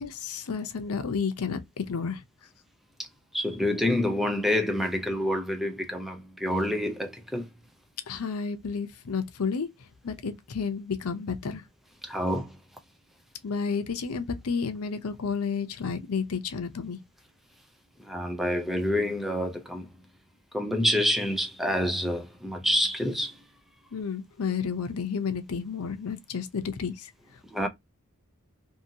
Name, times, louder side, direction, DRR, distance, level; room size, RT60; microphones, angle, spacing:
voice 1, 0.0-2.2 8.1-11.6 13.4-17.0 23.9-27.1, left 5 dB, 90° left, 0.6 m, -31 dB
voice 2, 3.3-7.5 12.0-12.5 18.0-19.9 20.5-23.3 27.5-27.7, left 1 dB, ahead, 0.4 m, -27 dB
2.7 x 2.6 x 2.6 m
head